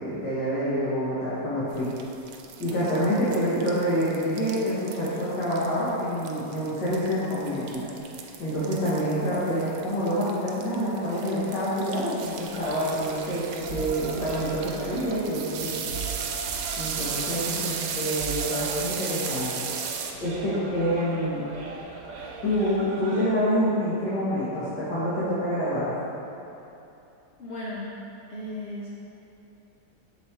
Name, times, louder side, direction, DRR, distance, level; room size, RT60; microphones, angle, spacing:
voice 1, 0.0-1.9 2.6-7.9 8.4-15.9 16.8-19.6 20.2-21.4 22.4-25.9, equal, 75° left, -12 dB, 1.9 m, -27 dB
sound 1, 1.7-20.1, right 7 dB, 85° right, 1.3 m, -36 dB
sound 2, 12.5-23.3, right 4 dB, 60° right, 1.1 m, -39 dB
voice 2, 27.4-27.9 28.3-28.9, left 1 dB, 55° left, -5 dB, 0.7 m, -35 dB
6.8 x 4.0 x 4.3 m, 2.9 s
omnidirectional pair, 1.9 m